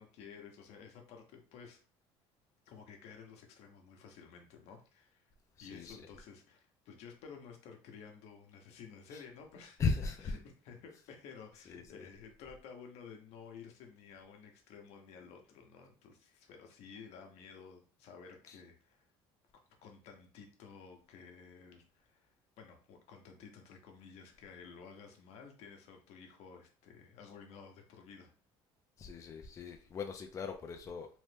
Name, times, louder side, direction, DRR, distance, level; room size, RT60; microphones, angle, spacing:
voice 1, 0.0-1.8 2.7-5.2 5.6-9.8 10.2-19.1 19.8-28.3, left 6 dB, 70° left, 3 dB, 0.8 m, -53 dB
voice 2, 5.6-6.1 9.1-9.2 9.8-10.3 11.7-12.1 18.5-18.6 29.0-31.1, left 4 dB, 30° left, 4 dB, 0.3 m, -38 dB
3.0 x 2.1 x 3.2 m, 0.38 s
cardioid pair, 115°, 11 cm